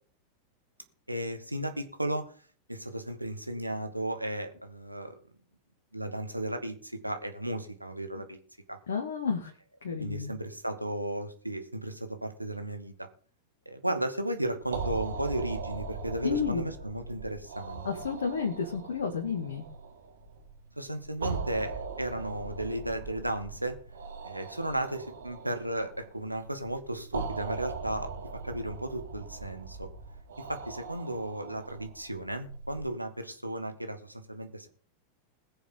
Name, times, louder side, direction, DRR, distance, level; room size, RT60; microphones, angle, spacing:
voice 1, 1.1-2.2 2.7-5.1 5.9-8.4 8.7-8.8 10.0-13.1 13.6-17.8 20.8-23.8 24.2-28.1 28.4-29.9 30.4-34.7, right 1 dB, 85° right, 7 dB, 1.6 m, -34 dB
voice 2, 8.9-9.5 9.8-10.3 16.2-16.6 17.8-19.6, left 6 dB, 65° left, 2 dB, 2.0 m, -31 dB
sound 1, 14.6-32.8, right 4 dB, 65° right, 2.4 m, -40 dB
21.0 x 7.1 x 3.9 m, 0.42 s
figure-of-eight pair, 90°, 0 cm